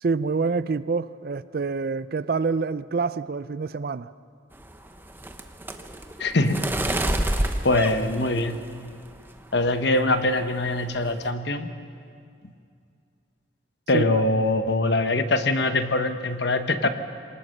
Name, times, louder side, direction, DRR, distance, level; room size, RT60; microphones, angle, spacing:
voice 1, 0.0-4.1 13.9-14.2, right 4 dB, 50° right, 0.4 m, -26 dB
sound 1, 4.5-8.9 9.4-9.8 10.1-10.4 10.7-11.3, right 1 dB, 10° right, 0.9 m, -29 dB
voice 2, 6.2-6.7 7.6-8.6 9.5-11.7 13.9-16.9, left 2 dB, 60° left, 1.1 m, -23 dB
23.5 x 19.5 x 6.6 m
head